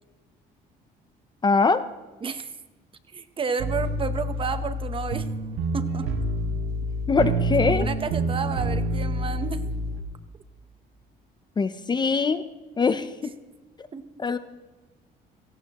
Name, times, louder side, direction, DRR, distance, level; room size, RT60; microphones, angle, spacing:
voice 1, 1.4-1.8 7.1-7.9 11.6-12.4 12.8-13.3 14.2-14.4, left 4 dB, 25° left, 12 dB, 0.7 m, -22 dB
voice 2, 2.2-2.5 3.1-5.3 5.7-6.1 7.8-9.6 13.9-14.1, right 5 dB, 30° right, 10 dB, 0.9 m, -31 dB
sound 1, 3.6-10.0, right 1 dB, 85° right, 1.3 m, -27 dB
17.5 x 16.0 x 3.0 m, 1.2 s
cardioid pair, 110°, 17 cm